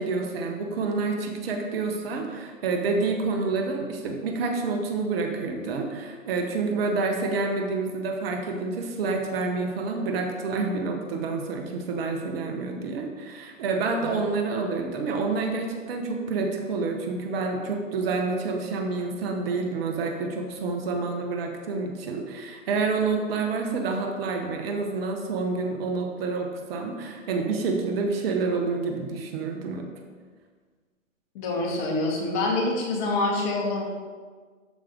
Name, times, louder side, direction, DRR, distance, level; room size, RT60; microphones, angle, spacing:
voice 1, 0.0-29.9, right 4 dB, 45° right, 3 dB, 1.4 m, -28 dB
voice 2, 31.3-33.8, left 2 dB, 35° left, -1 dB, 2.2 m, -26 dB
12.5 x 5.4 x 3.7 m, 1.5 s
hypercardioid pair, 125°, 40 cm